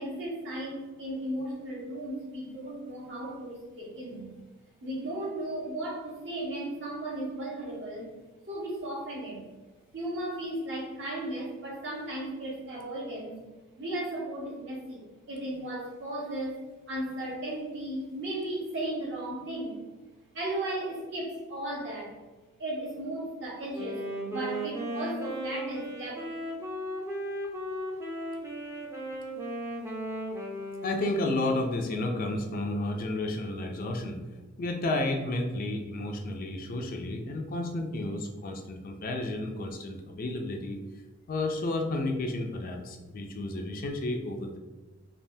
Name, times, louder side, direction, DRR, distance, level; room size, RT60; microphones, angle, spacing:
voice 1, 0.0-4.3 4.8-8.1 8.5-9.4 9.9-13.4 13.8-16.6 16.9-19.8 20.3-22.2 22.6-26.3, right 1 dB, 60° right, -5 dB, 1.1 m, -35 dB
Wind instrument woodwind instrument, 23.7-31.8, right 1 dB, 15° right, 0.5 m, -36 dB
voice 2, 30.8-34.2 34.6-40.8 41.3-44.6, left 2 dB, 45° left, 3 dB, 0.4 m, -32 dB
3.4 x 2.4 x 2.6 m, 1.2 s
head